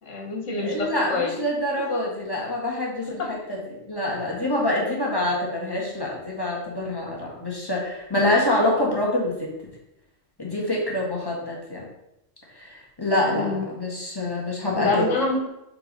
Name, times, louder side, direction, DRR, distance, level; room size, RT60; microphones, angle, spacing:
voice 1, 0.0-1.3 13.3-13.7 14.7-15.5, left 2 dB, 70° left, 1 dB, 1.7 m, -26 dB
voice 2, 0.6-9.5 10.4-11.8 12.5-15.1, left 1 dB, 20° left, -3 dB, 1.5 m, -26 dB
4.8 x 4.7 x 5.2 m, 0.88 s
omnidirectional pair, 1.3 m